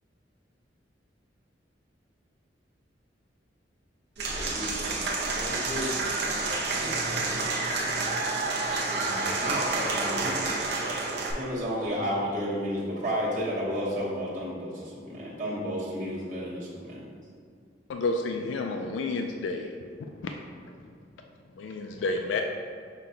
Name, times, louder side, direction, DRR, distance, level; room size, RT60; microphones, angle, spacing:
Applause / Crowd, 4.2-11.3, right 3 dB, 65° right, 0.7 m, -29 dB
voice 1, 4.3-7.4, left 1 dB, 10° left, -10 dB, 0.6 m, -39 dB
voice 2, 8.9-10.5 11.3-17.0, equal, 45° right, -9 dB, 1.1 m, -31 dB
voice 3, 17.9-19.7 21.6-22.4, left 3 dB, 75° left, 3 dB, 0.3 m, -30 dB
5.7 x 2.2 x 3.8 m, 2.3 s
head